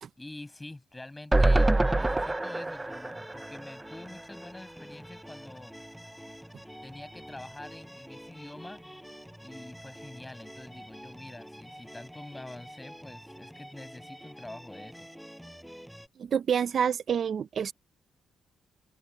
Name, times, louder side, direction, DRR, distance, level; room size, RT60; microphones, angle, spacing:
voice 1, 0.2-5.8 6.8-8.8 9.4-15.1, left 2 dB, 15° left, 7.8 m, -46 dB
sound 1, 1.3-4.6 4.9-5.0 5.2-5.3, right 2 dB, 20° right, 0.9 m, -26 dB
sound 2, 1.5-16.1, equal, ahead, 6.0 m, -47 dB
voice 2, 16.2-17.7, right 8 dB, 60° right, 0.9 m, -28 dB
cardioid pair, 70°, 0 cm